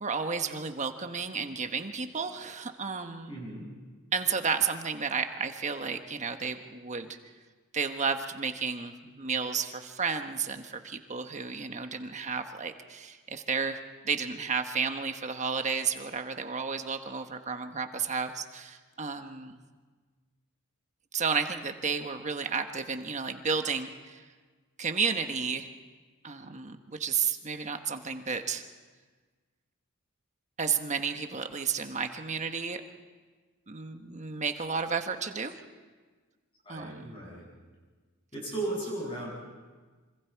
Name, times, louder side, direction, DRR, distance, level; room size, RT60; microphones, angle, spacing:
voice 1, 0.0-3.5 4.1-7.2 7.7-19.6 21.1-24.2 24.8-25.7 26.2-28.6 30.6-32.8 33.7-35.5 36.7-37.1, right 5 dB, 35° right, 7 dB, 1.2 m, -32 dB
voice 2, 3.3-3.7 36.6-37.5 38.3-39.3, right 2 dB, 25° left, -4 dB, 7.9 m, -36 dB
26.5 x 25.5 x 4.7 m, 1.4 s
head